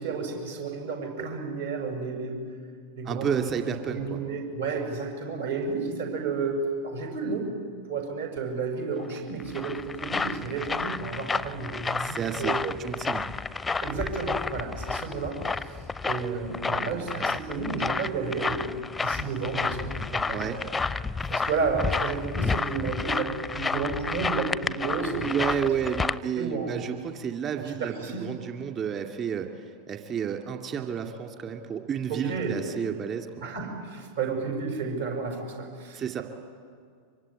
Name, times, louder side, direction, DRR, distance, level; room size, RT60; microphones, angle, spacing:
voice 1, 0.0-2.5 2.9-7.5 7.9-12.6 13.7-15.8 16.1-18.7 19.0-20.6 21.3-25.4 26.4-26.8 27.6-28.3 32.1-32.6 33.4-36.2, right 4 dB, 60° right, 3 dB, 6.2 m, -32 dB
voice 2, 3.0-4.2 12.0-13.3 20.3-20.6 25.2-27.9 28.2-29.5 29.9-33.5 35.9-36.2, right 8 dB, 30° right, 5 dB, 2.5 m, -31 dB
sound 1, 9.2-26.2, left 4 dB, 10° left, 0.6 m, -31 dB
24.5 x 24.0 x 10.0 m, 2.1 s
figure-of-eight pair, 90°, 0 cm